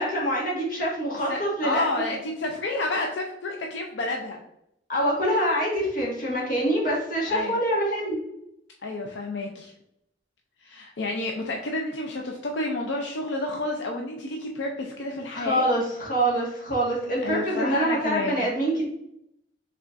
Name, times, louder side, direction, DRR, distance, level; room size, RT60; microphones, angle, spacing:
voice 1, 0.0-2.2 4.9-8.2 15.3-18.9, right 1 dB, 50° left, -4 dB, 1.7 m, -25 dB
voice 2, 1.3-4.4 7.3-7.6 8.8-9.7 10.6-15.7 17.2-18.5, left 2 dB, 80° left, 1 dB, 0.5 m, -30 dB
5.5 x 3.6 x 2.5 m, 0.79 s
head